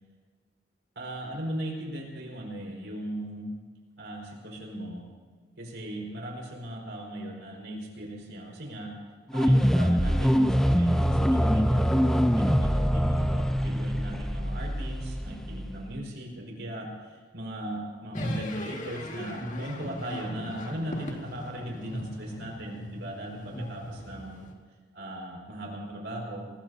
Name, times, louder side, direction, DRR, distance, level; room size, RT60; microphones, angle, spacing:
voice 1, 0.9-3.5 4.0-5.1 5.6-8.9 9.3-24.5 24.9-26.5, right 1 dB, 85° right, -1 dB, 5.0 m, -38 dB
sound 1, 9.3-16.0, equal, 5° left, 0.6 m, -24 dB
sound 2, 18.1-24.5, equal, 45° left, 2.0 m, -38 dB
24.5 x 20.5 x 2.8 m, 1.5 s
head